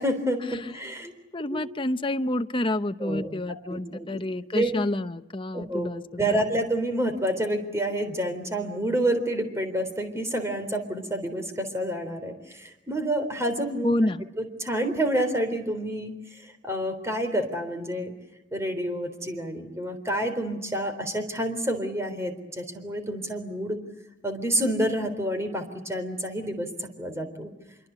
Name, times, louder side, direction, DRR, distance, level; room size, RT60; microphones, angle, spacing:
voice 1, 0.0-1.1 1.5-1.6 3.0-3.3 3.7-4.2 4.5-4.7 5.5-5.9 6.2-13.9 14.4-18.1 18.5-23.8 24.2-27.5, right 1 dB, 15° right, 7 dB, 3.7 m, -28 dB
voice 2, 1.3-6.4 13.8-14.2, left 1 dB, 30° left, 9 dB, 0.8 m, -28 dB
26.0 x 23.5 x 8.2 m, 0.99 s
head